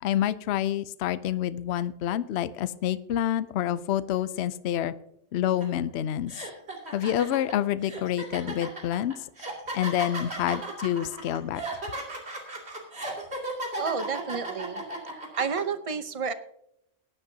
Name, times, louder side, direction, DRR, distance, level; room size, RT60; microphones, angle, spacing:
voice 1, 0.0-4.9 5.3-6.3 6.9-9.2 9.7-11.6, left 11 dB, 65° left, 14 dB, 0.8 m, -28 dB
sound 1, 5.6-5.8 6.3-15.6, right 2 dB, 55° right, 2.8 m, -35 dB
voice 2, 10.1-10.5 13.8-14.9 15.1-16.3, right 6 dB, 35° right, 10 dB, 0.7 m, -32 dB
19.5 x 10.0 x 2.8 m, 0.75 s
omnidirectional pair, 1.3 m